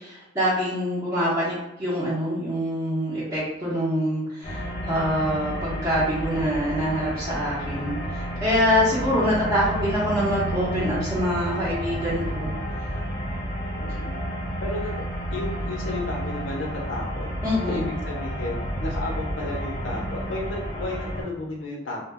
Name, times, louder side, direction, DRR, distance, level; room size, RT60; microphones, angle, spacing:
voice 1, 0.0-12.5 17.4-17.9, equal, 15° right, -10 dB, 0.7 m, -25 dB
sound 1, 4.4-21.2, equal, 25° left, 0.8 m, -31 dB
voice 2, 13.8-14.2 14.6-14.9 15.3-17.3 17.7-18.6 18.8-22.0, left 2 dB, 80° left, -2 dB, 0.5 m, -33 dB
2.1 x 2.0 x 3.3 m, 0.90 s
head